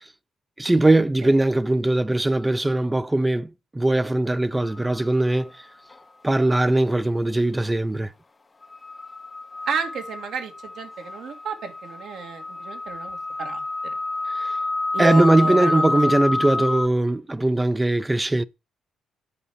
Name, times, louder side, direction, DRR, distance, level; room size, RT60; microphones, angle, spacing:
voice 1, 0.6-5.5 6.2-8.1 14.3-14.5 15.0-18.4, right 2 dB, 15° right, 0.6 m, -20 dB
sound 1, 4.6-4.9 8.6-16.9, left 2 dB, 25° left, 0.7 m, -29 dB
voice 2, 9.7-13.6 14.9-15.8, right 5 dB, 75° right, 2.3 m, -31 dB
8.6 x 4.8 x 7.1 m
cardioid pair, 90°, 0 cm